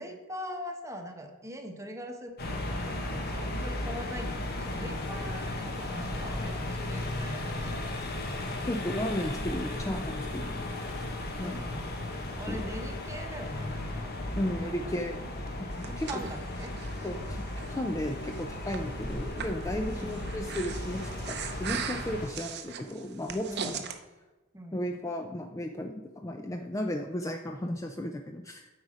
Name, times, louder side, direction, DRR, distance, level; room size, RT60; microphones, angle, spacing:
voice 1, 0.0-8.4 11.4-11.9 12.3-14.9 15.8-16.7 19.9-20.2 23.5-23.8 24.5-24.9, equal, 15° right, 4 dB, 0.9 m, -42 dB
sound 1, 2.4-22.3, left 1 dB, 50° left, 1.0 m, -35 dB
voice 2, 8.7-10.6 11.4-11.7 12.5-12.7 14.4-15.3 15.6-16.1 17.0-23.8 24.7-28.7, left 1 dB, 15° left, 5 dB, 0.4 m, -34 dB
Breathing, 15.5-24.0, right 7 dB, 55° right, 0.7 m, -40 dB
8.2 x 4.8 x 5.0 m, 1.2 s
head